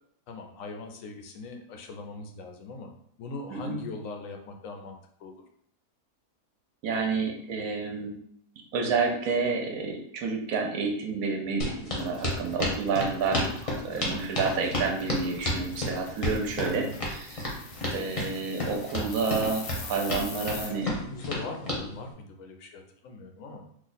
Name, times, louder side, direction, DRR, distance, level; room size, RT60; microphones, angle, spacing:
voice 1, 0.3-2.9 3.2-5.3 16.7-17.0 20.5-23.6, left 3 dB, 70° left, 4 dB, 0.9 m, -40 dB
voice 2, 6.8-8.2 8.7-13.5 13.8-17.5 17.9-20.9, right 4 dB, 70° right, 2 dB, 1.0 m, -29 dB
sound 1, 11.6-21.8, left 1 dB, 30° left, 0.7 m, -31 dB
sound 2, 12.0-20.7, left 4 dB, 85° left, 1.2 m, -44 dB
3.0 x 2.3 x 4.0 m, 0.68 s
omnidirectional pair, 1.6 m